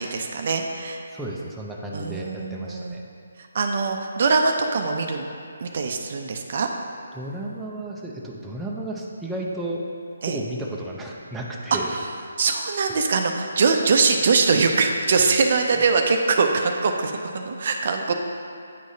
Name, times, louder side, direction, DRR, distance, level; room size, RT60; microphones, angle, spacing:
voice 1, 0.0-1.0 1.9-3.0 3.5-5.2 5.6-6.7 10.2-10.4 11.7-12.0 12.4-18.1, right 4 dB, 50° right, 4 dB, 0.5 m, -22 dB
voice 2, 1.1-3.0 7.1-9.8 10.2-12.0 12.7-12.9 15.2-15.3, right 1 dB, 5° right, -4 dB, 0.5 m, -33 dB
9.0 x 4.7 x 2.7 m, 2.4 s
figure-of-eight pair, 155°, 0 cm